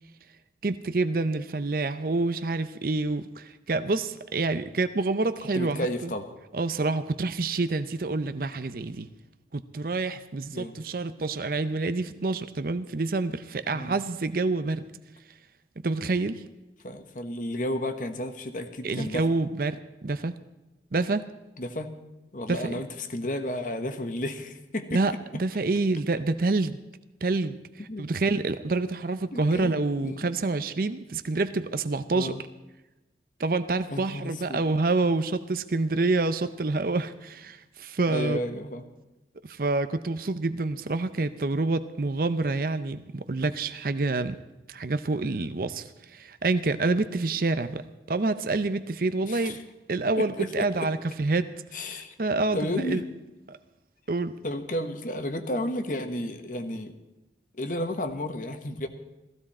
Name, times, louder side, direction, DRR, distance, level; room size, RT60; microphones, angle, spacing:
voice 1, 0.6-6.1 6.5-9.1 9.5-14.8 15.8-16.4 18.8-20.3 20.9-21.2 22.5-22.7 24.9-26.8 27.2-32.3 33.4-38.4 39.4-44.4 44.7-47.8 48.1-49.6 49.9-51.5 51.8-53.0 53.5-53.6 54.1-54.3, right 3 dB, 55° right, 11 dB, 0.6 m, -27 dB
voice 2, 5.5-6.3 10.5-10.8 13.7-13.9 16.8-19.3 21.6-21.9 22.3-25.0 27.9-28.1 29.3-30.3 32.1-32.4 33.9-34.6 38.1-38.8 49.2-49.6 50.2-50.9 51.7-52.1 52.5-53.1 54.4-56.9 57.5-58.9, left 1 dB, 50° left, 8 dB, 1.2 m, -32 dB
16.0 x 15.5 x 4.3 m, 1.0 s
head